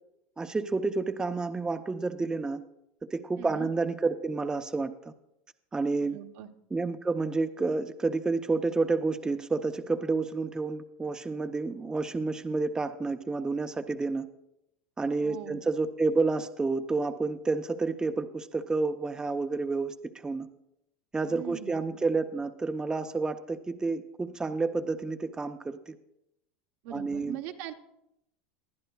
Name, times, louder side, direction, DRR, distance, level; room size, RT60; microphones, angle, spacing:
voice 1, 0.4-2.6 3.1-5.1 5.7-6.2 6.7-14.3 15.0-19.9 20.2-20.5 21.1-26.0 26.9-27.4, right 3 dB, 15° right, 7 dB, 0.6 m, -30 dB
voice 2, 3.4-3.7 6.0-6.5 15.2-15.6 21.2-21.8 26.8-27.7, right 11 dB, 65° right, 6 dB, 0.9 m, -41 dB
20.0 x 10.5 x 2.3 m, 0.83 s
supercardioid pair, 105°, 6 cm